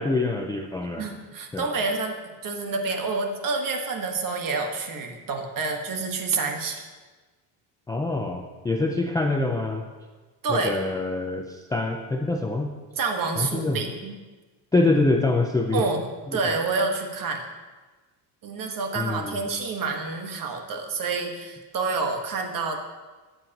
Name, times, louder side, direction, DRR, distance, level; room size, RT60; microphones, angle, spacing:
voice 1, 0.0-1.0 1.5-1.7 7.9-9.8 10.5-12.7 13.4-13.8 14.7-15.8 16.3-16.4 19.0-19.4, left 2 dB, 10° left, 2 dB, 0.3 m, -25 dB
voice 2, 1.0-6.8 10.4-10.8 13.0-14.2 15.7-16.1 16.3-17.4 18.4-22.8, right 4 dB, 45° right, 3 dB, 1.4 m, -28 dB
14.0 x 7.7 x 2.9 m, 1.3 s
cardioid pair, 125°, 46 cm